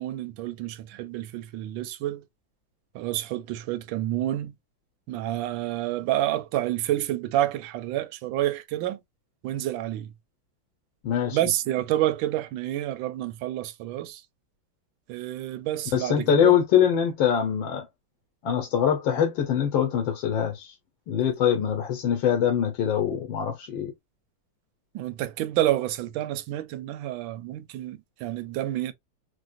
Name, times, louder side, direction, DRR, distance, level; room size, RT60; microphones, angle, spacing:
voice 1, 0.0-2.2 2.9-4.5 5.1-9.0 9.4-10.1 11.3-14.2 15.1-16.6 24.9-28.9, right 14 dB, 85° right, 1.3 m, -29 dB
voice 2, 11.0-11.4 15.9-17.9 18.4-20.7 21.1-23.9, left 9 dB, 90° left, 1.5 m, -23 dB
4.6 x 2.1 x 2.4 m
omnidirectional pair, 2.1 m